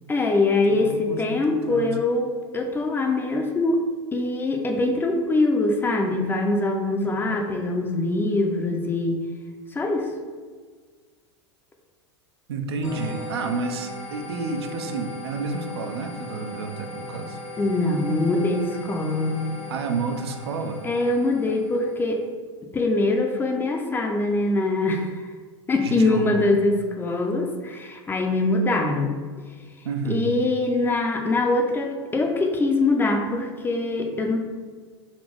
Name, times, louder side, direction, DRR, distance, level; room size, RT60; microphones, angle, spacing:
voice 1, 0.1-3.8 4.1-9.2 9.7-10.1 17.6-19.4 20.8-22.2 22.7-25.2 25.7-29.1 30.1-34.4, left 2 dB, 15° left, 3 dB, 0.5 m, -23 dB
voice 2, 0.7-2.0 7.0-7.5 12.5-17.4 19.7-20.8 25.8-26.5 29.8-30.3, right 4 dB, 60° right, 6 dB, 0.5 m, -30 dB
sound 1, 12.8-22.2, left 1 dB, 80° left, 0.9 m, -38 dB
4.1 x 2.9 x 3.3 m, 1.5 s
figure-of-eight pair, 85°, 15 cm